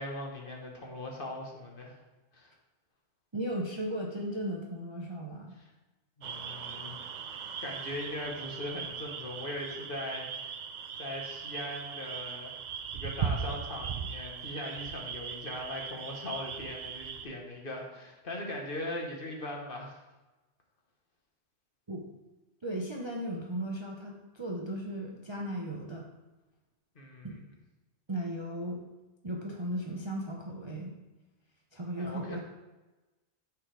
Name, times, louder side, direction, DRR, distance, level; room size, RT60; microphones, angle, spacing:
voice 1, 0.0-2.0 2.3-2.5 6.2-7.0 7.6-10.6 11.0-12.6 12.9-20.0 26.9-27.3 31.9-32.4, left 1 dB, 45° left, 0 dB, 1.3 m, -40 dB
voice 2, 3.3-5.6 21.9-22.0 22.6-26.1 27.2-27.4 28.1-28.8 29.2-30.9 31.7-32.4, right 1 dB, 30° right, -1 dB, 0.6 m, -36 dB
sound 1, 6.2-17.2, right 7 dB, 70° right, 0.4 m, -39 dB
9.4 x 5.0 x 3.4 m, 1.1 s
omnidirectional pair, 1.3 m